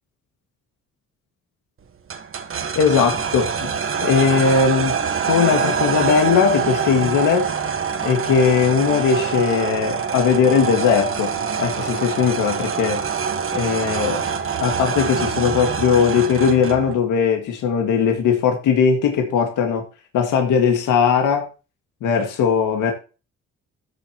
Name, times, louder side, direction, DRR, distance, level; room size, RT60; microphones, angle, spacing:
sound 1, 2.1-16.9, right 6 dB, 45° right, 1.4 m, -25 dB
voice 1, 2.8-3.7 4.0-5.0 5.3-7.5 8.0-13.0 13.5-14.3 14.6-19.8 20.1-21.5 22.0-22.9, left 6 dB, 85° left, 2.0 m, -19 dB
14.0 x 6.6 x 3.0 m
cardioid pair, 90°, 30 cm